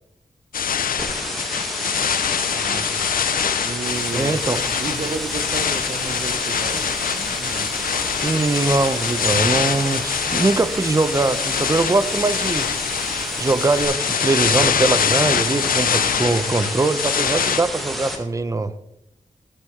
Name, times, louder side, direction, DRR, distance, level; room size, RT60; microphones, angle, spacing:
sound 1, 0.5-17.6, left 8 dB, 85° left, 0.4 m, -24 dB
sound 2, 1.0-18.2, equal, ahead, 1.6 m, -30 dB
voice 1, 2.3-2.9 3.6-4.4 4.8-7.7, right 4 dB, 55° right, 10 dB, 0.8 m, -32 dB
sound 3, 3.9-13.9, right 2 dB, 75° right, 2.3 m, -41 dB
voice 2, 4.1-4.6 8.2-12.7 13.4-18.7, right 3 dB, 20° right, 11 dB, 0.6 m, -21 dB
13.0 x 9.1 x 3.2 m, 0.81 s
wide cardioid pair, 115°, 14 cm